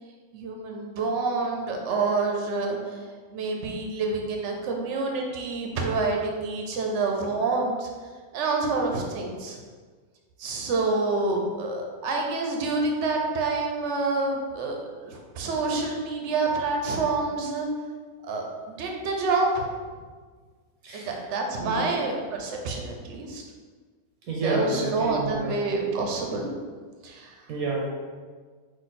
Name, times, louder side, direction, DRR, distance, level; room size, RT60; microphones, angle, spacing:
voice 1, 0.3-3.0 3.3-7.9 8.3-9.6 10.4-17.7 18.2-19.7 20.9-23.4 24.4-26.5 27.0-27.4, right 3 dB, 60° right, 1 dB, 0.9 m, -27 dB
voice 2, 20.8-21.2 21.6-21.9 24.3-25.5 27.5-27.8, right 3 dB, 85° right, -2 dB, 1.1 m, -29 dB
4.0 x 2.6 x 4.1 m, 1.5 s
omnidirectional pair, 1.5 m